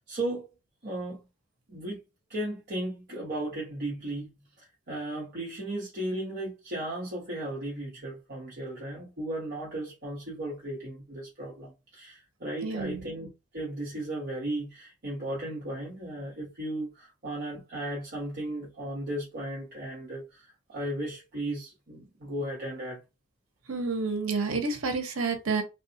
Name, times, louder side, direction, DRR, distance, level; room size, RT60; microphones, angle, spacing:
voice 1, 0.1-0.5 0.8-1.2 1.7-2.0 2.3-4.3 4.6-23.0, right 1 dB, 50° right, 1.0 m, -35 dB
voice 2, 12.6-13.0 23.7-25.6, right 4 dB, 90° right, 0.9 m, -29 dB
3.6 x 2.3 x 2.7 m
head